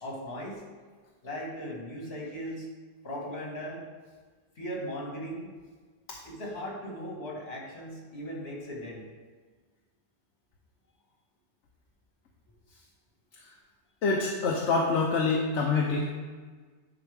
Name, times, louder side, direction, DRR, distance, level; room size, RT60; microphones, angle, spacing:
voice 1, 0.0-0.6 1.2-2.7 3.0-3.8 4.6-5.5 6.2-9.1, equal, 60° left, -3 dB, 2.0 m, -38 dB
voice 2, 14.0-16.1, left 4 dB, 75° left, -1 dB, 1.1 m, -26 dB
10.5 x 4.8 x 3.4 m, 1.4 s
omnidirectional pair, 1.2 m